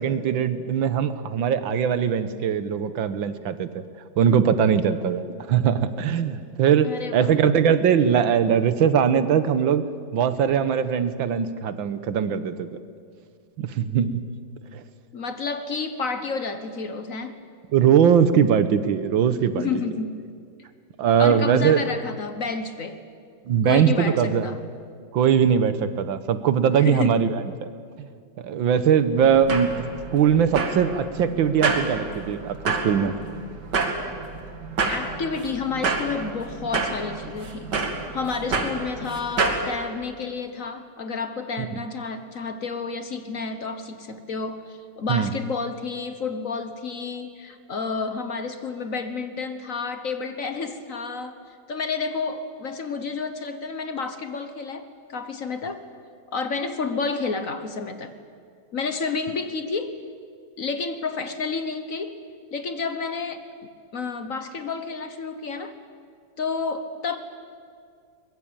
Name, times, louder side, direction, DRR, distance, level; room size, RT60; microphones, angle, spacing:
voice 1, 0.0-3.7 4.2-9.8 10.1-12.7 13.6-14.2 17.7-19.7 21.0-21.8 23.5-24.5 25.1-27.4 28.4-32.6 32.8-33.1 41.6-41.7 45.1-45.3, right 8 dB, 75° right, 12 dB, 1.8 m, -21 dB
voice 2, 6.8-7.3 15.1-17.4 19.5-20.3 21.2-23.0 23.6-24.6 26.7-27.2 34.9-37.7 38.1-55.8 56.3-58.1 58.7-60.0 60.6-62.2 62.5-65.7 66.4-67.2, left 4 dB, 50° left, 9 dB, 1.4 m, -30 dB
sound 1, 29.2-39.6, right 4 dB, 60° right, 2.6 m, -29 dB
22.5 x 21.0 x 8.9 m, 2.2 s
omnidirectional pair, 2.1 m